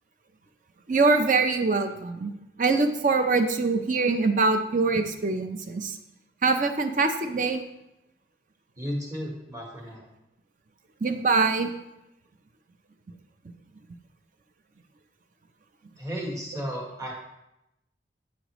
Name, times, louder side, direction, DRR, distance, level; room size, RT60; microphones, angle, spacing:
voice 1, 0.9-2.3 2.6-6.0 6.4-7.6 11.0-11.7, right 3 dB, 45° right, 7 dB, 0.5 m, -23 dB
voice 2, 8.8-10.1 16.0-17.1, equal, 20° right, -1 dB, 1.3 m, -34 dB
8.1 x 6.5 x 3.0 m, 0.88 s
head